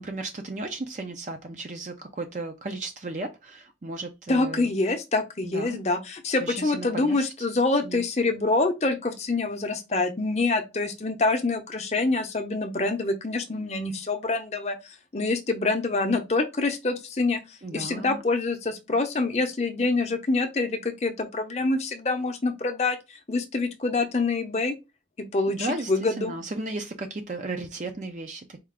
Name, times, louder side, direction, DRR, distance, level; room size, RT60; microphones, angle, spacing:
voice 1, 0.0-4.7 5.4-5.8 6.4-7.2 7.8-8.0 17.6-18.2 25.5-28.6, right 2 dB, 40° right, 0.5 m, -35 dB
voice 2, 4.3-14.8 15.1-17.4 17.7-23.0 23.3-24.7 25.2-26.3, left 3 dB, 40° left, 0.6 m, -26 dB
4.3 x 2.4 x 3.7 m
head